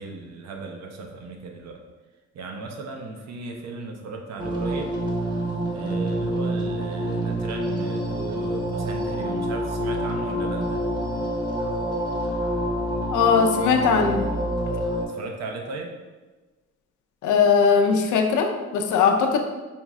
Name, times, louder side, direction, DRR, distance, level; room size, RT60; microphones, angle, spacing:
voice 1, 0.0-1.8 2.3-4.9 5.7-10.8 15.0-16.0, right 3 dB, 60° right, 2 dB, 0.7 m, -36 dB
sound 1, 4.4-15.0, equal, 15° right, 0.8 m, -27 dB
voice 2, 13.1-14.3 17.2-19.4, left 5 dB, 80° left, 4 dB, 0.6 m, -20 dB
4.4 x 2.0 x 3.5 m, 1.2 s
cardioid pair, 90°, 30 cm